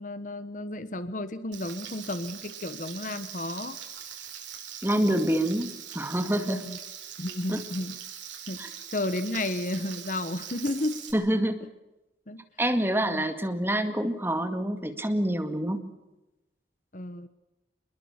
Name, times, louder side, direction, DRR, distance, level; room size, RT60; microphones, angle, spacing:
voice 1, 0.0-3.8 6.4-6.8 7.2-8.0 8.4-11.0 11.6-11.7 12.3-12.4 13.1-13.2 16.9-17.3, left 1 dB, 45° left, 13 dB, 1.1 m, -33 dB
Frying (food), 1.5-11.1, right 8 dB, 90° right, 5.9 m, -42 dB
voice 2, 4.8-6.6 7.5-7.6 8.6-8.7 11.1-11.6 12.6-15.9, right 1 dB, 10° right, 7 dB, 2.0 m, -27 dB
26.5 x 21.5 x 7.3 m, 1.0 s
head